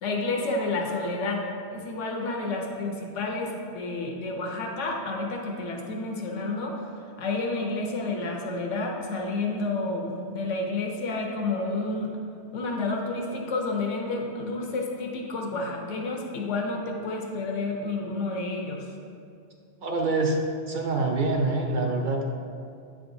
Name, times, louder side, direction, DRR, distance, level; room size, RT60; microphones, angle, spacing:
voice 1, 0.0-1.4 1.7-6.8 7.2-12.1 12.5-18.8, left 3 dB, 85° left, 0 dB, 1.1 m, -30 dB
voice 2, 19.8-20.4 20.7-22.2, right 3 dB, 55° right, 1 dB, 0.6 m, -25 dB
8.7 x 4.9 x 2.6 m, 2.4 s
omnidirectional pair, 1.2 m